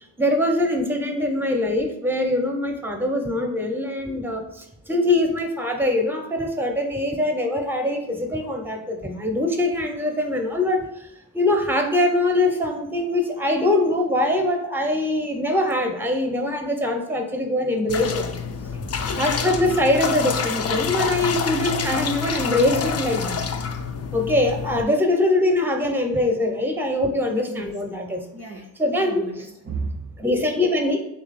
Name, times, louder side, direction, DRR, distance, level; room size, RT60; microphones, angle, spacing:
voice 1, 0.2-11.1 11.3-18.3 18.8-18.9 19.2-23.4 24.1-28.2 28.8-29.3 30.2-31.0, left 1 dB, 5° right, 4 dB, 0.8 m, -23 dB
sound 1, 17.9-24.8, left 6 dB, 30° left, 0.4 m, -27 dB
voice 2, 27.5-30.2, right 3 dB, 30° right, 1 dB, 0.5 m, -36 dB
3.1 x 2.9 x 4.1 m, 0.81 s
supercardioid pair, 55°, 50 cm